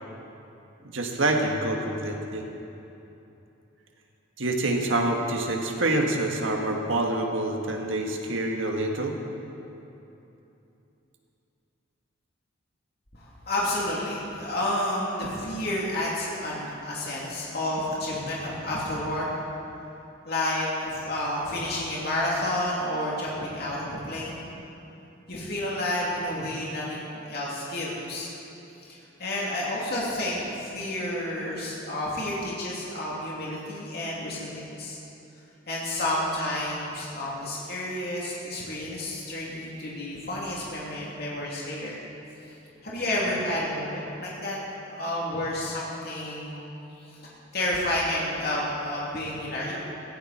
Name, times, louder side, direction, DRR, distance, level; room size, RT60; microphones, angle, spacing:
voice 1, 0.9-2.5 4.4-9.2, right 2 dB, 75° right, 2 dB, 1.6 m, -26 dB
voice 2, 13.1-19.4 20.2-24.4 25.3-28.3 28.9-35.0 35.7-42.0 42.4-42.5 42.8-44.6 44.9-46.6 47.1-47.2 47.5-49.7, left 1 dB, 50° left, -5 dB, 2.9 m, -30 dB
16.5 x 16.0 x 4.3 m, 2.9 s
head